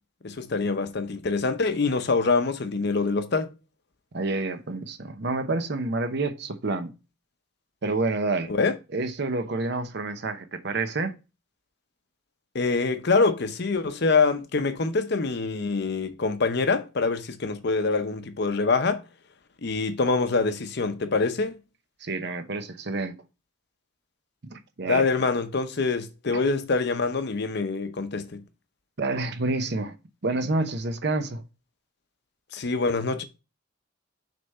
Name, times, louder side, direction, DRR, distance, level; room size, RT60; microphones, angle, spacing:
voice 1, 0.2-3.5 8.5-8.7 12.5-19.0 19.6-21.6 24.9-28.4 32.5-33.2, left 4 dB, 55° left, 0.7 m, -25 dB
voice 2, 4.1-6.9 7.8-8.5 8.9-11.2 22.0-23.2 24.4-25.1 29.0-30.0 30.2-31.4, right 3 dB, 55° right, 0.8 m, -28 dB
6.6 x 3.5 x 5.3 m
head